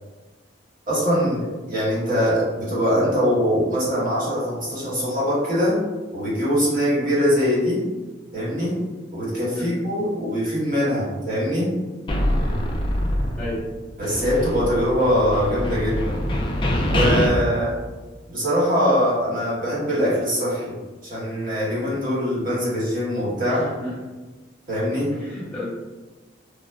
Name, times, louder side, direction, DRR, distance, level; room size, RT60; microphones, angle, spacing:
voice 1, 0.9-5.8 6.1-7.8 8.3-8.8 9.1-11.7 14.0-16.2 16.9-17.8 18.3-23.7 24.7-25.1, equal, 50° right, -7 dB, 1.1 m, -22 dB
sound 1, 12.1-13.7 14.0-17.3, left 1 dB, 25° left, 0.3 m, -24 dB
voice 2, 23.4-24.0 25.1-25.6, left 1 dB, 5° left, -7 dB, 0.9 m, -33 dB
3.2 x 2.0 x 2.3 m, 1.2 s
head